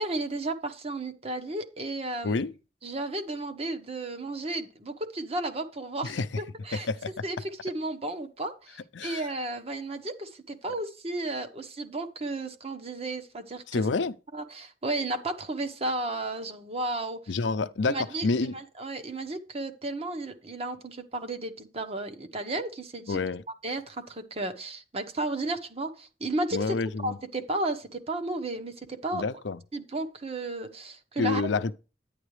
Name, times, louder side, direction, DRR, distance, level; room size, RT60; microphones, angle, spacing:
voice 1, 0.0-2.4 2.8-6.9 7.2-13.9 14.3-17.3 17.9-23.2 23.6-29.3 29.7-31.4, right 2 dB, 35° right, 1.2 m, -33 dB
voice 2, 13.7-14.1 17.3-18.5 23.1-23.4 26.5-27.2 29.1-29.6 31.2-31.7, left 4 dB, 80° left, 0.6 m, -28 dB
10.0 x 10.0 x 3.3 m
head